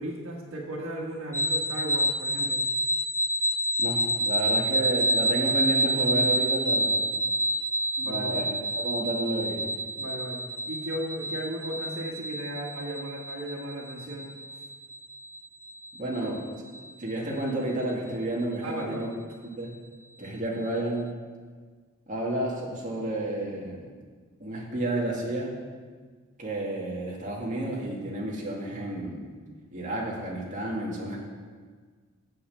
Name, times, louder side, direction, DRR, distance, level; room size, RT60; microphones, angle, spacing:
voice 1, 0.0-2.6 8.0-8.4 10.0-14.3 16.2-16.3 18.6-19.1, right 1 dB, 90° right, -1 dB, 1.5 m, -36 dB
sound 1, 1.3-16.9, equal, 10° left, 0.4 m, -28 dB
voice 2, 3.8-7.1 8.0-8.5 8.7-9.8 15.9-16.4 17.0-19.1 19.4-19.8 20.2-21.1 22.1-23.9 24.4-25.6 26.4-29.3 29.7-31.2, right 1 dB, 40° right, -3 dB, 2.1 m, -31 dB
8.5 x 7.5 x 6.7 m, 1.5 s
head